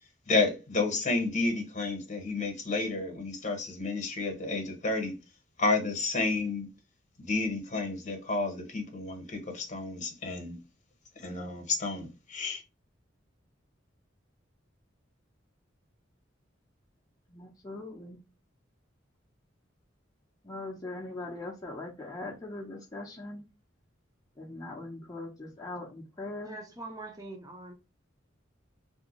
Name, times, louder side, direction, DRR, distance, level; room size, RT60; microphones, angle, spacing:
voice 1, 0.3-5.1 5.6-6.7 7.2-10.6 11.2-12.6, left 3 dB, 40° left, 1.0 m, -31 dB
voice 2, 17.3-18.2 20.4-23.4 24.4-26.6, left 2 dB, 20° left, 0.7 m, -41 dB
voice 3, 26.4-27.7, right 2 dB, 20° right, 0.7 m, -43 dB
3.2 x 2.6 x 3.0 m
head